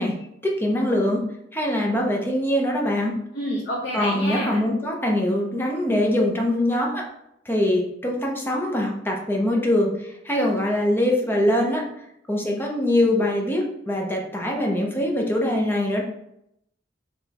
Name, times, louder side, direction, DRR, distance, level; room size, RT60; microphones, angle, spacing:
voice 1, 0.0-3.2 3.9-7.1 7.5-11.9 12.3-16.0, left 1 dB, 10° left, -1 dB, 0.7 m, -23 dB
voice 2, 3.3-4.6, equal, 60° left, -5 dB, 0.9 m, -28 dB
4.9 x 3.3 x 2.9 m, 0.78 s
head